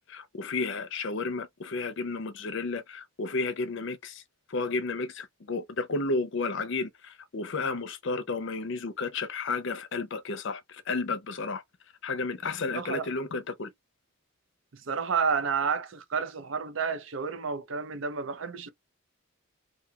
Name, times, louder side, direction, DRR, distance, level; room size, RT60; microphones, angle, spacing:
voice 1, 0.1-4.2 4.5-11.6 12.0-13.7, left 3 dB, 55° left, 0.5 m, -32 dB
voice 2, 12.7-13.1 14.7-18.7, right 5 dB, 60° right, 0.5 m, -30 dB
2.7 x 2.3 x 2.7 m
head